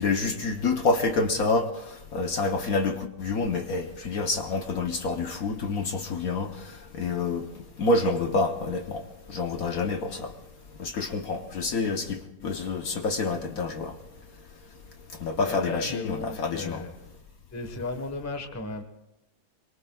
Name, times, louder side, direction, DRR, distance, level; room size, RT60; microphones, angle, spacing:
voice 1, 0.0-1.7 2.1-6.5 6.9-7.4 7.8-9.0 9.3-10.3 10.8-13.9 15.2-16.8, left 3 dB, 55° left, 1.2 m, -27 dB
voice 2, 15.4-16.9 17.5-18.8, left 2 dB, 10° left, 0.9 m, -34 dB
24.5 x 22.5 x 2.3 m
omnidirectional pair, 2.0 m